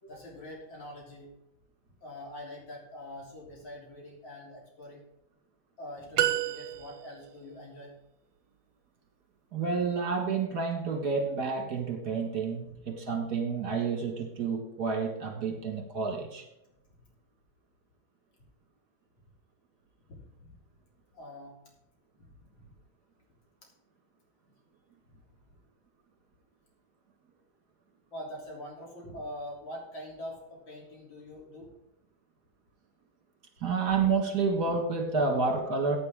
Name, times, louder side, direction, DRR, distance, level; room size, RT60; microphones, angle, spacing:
voice 1, 0.0-1.3 2.0-5.0 5.8-7.9 12.7-12.8 20.1-20.6 21.1-21.5 22.2-22.3 22.6-22.7 25.5-25.6 28.1-31.7, left 1 dB, 70° left, -2 dB, 4.2 m, -44 dB
sound 1, 6.2-7.3, right 13 dB, 80° right, 1.5 m, -29 dB
voice 2, 9.5-16.4 33.6-36.0, right 4 dB, 55° right, 3 dB, 2.2 m, -29 dB
15.0 x 8.7 x 3.7 m, 0.87 s
omnidirectional pair, 2.1 m